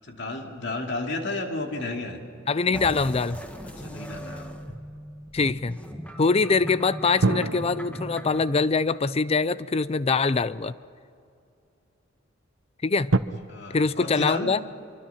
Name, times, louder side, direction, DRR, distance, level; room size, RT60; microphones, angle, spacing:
voice 1, 0.0-2.2 3.8-4.7 13.5-14.5, left 2 dB, 60° left, 2 dB, 2.6 m, -32 dB
sound 1, 1.7-4.3 7.2-10.6 11.3-11.4 13.1-13.2, right 3 dB, 80° right, 0.8 m, -31 dB
voice 2, 2.5-3.4 5.3-5.8 6.2-10.7 12.8-13.1 13.7-14.6, left 4 dB, 30° left, 17 dB, 0.5 m, -23 dB
sound 2, 2.7-8.5, equal, 5° left, 1.5 m, -38 dB
25.0 x 23.5 x 5.8 m, 2.5 s
head